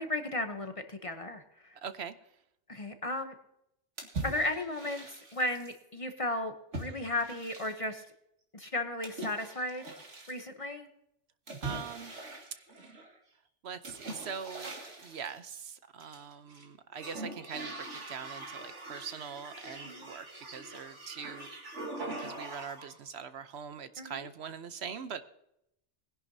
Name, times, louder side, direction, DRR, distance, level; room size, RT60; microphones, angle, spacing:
voice 1, 0.0-1.7 2.7-3.3 4.2-8.0 8.5-9.8 10.3-10.9 19.8-20.1 24.0-24.2, left 1 dB, 30° left, 6 dB, 0.8 m, -35 dB
voice 2, 1.7-2.3 11.6-12.1 13.6-21.5 22.0-25.2, right 7 dB, 65° right, 11 dB, 1.0 m, -43 dB
sound 1, 4.0-5.8 6.7-8.0 9.0-10.4 11.5-13.2 13.8-15.4 16.0-16.6 16.9-22.9, right 2 dB, 80° right, 2.4 m, -42 dB
21.0 x 10.5 x 2.7 m, 0.81 s
omnidirectional pair, 1.2 m